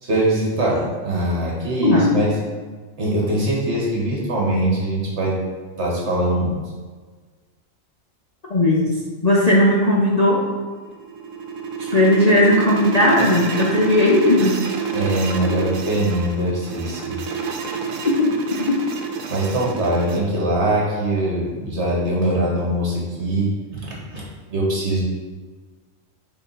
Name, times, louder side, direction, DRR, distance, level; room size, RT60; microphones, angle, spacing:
voice 1, 0.0-2.3 3.0-5.4 5.8-6.6 14.9-17.2 19.3-25.0, right 1 dB, 55° right, -4 dB, 1.7 m, -22 dB
voice 2, 8.5-8.9 9.2-10.5 11.8-14.6 18.0-18.4 18.7-18.8, left 1 dB, 40° left, -5 dB, 0.6 m, -17 dB
sound 1, 10.8-20.2, right 5 dB, 85° right, 1.1 m, -28 dB
5.7 x 3.9 x 4.1 m, 1.4 s
omnidirectional pair, 1.4 m